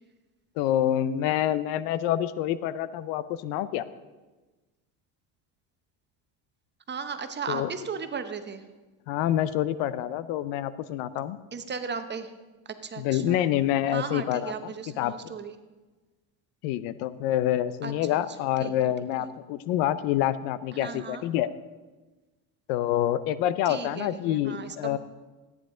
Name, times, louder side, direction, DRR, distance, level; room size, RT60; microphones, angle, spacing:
voice 1, 0.6-3.8 7.5-7.7 9.1-11.4 13.0-15.1 16.6-21.5 22.7-25.0, left 12 dB, 90° left, 15 dB, 0.7 m, -27 dB
voice 2, 6.9-8.6 11.5-12.3 12.8-13.4 13.9-15.6 17.8-18.2 18.6-18.9 20.7-21.2 23.7-25.0, right 5 dB, 25° right, 8 dB, 0.8 m, -36 dB
14.0 x 9.7 x 3.8 m, 1.2 s
cardioid pair, 120°, 45 cm